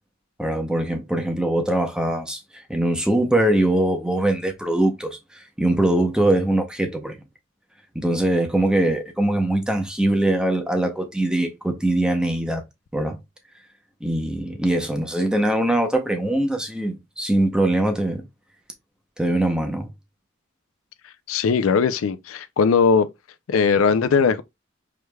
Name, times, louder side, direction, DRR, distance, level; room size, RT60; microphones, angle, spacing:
voice 1, 0.4-7.2 7.9-12.6 12.9-13.2 14.0-18.2 19.2-19.9, right 1 dB, 5° right, 0.7 m, -22 dB
voice 2, 21.3-23.1 23.5-24.4, left 5 dB, 75° left, 0.4 m, -19 dB
4.8 x 3.2 x 2.2 m
head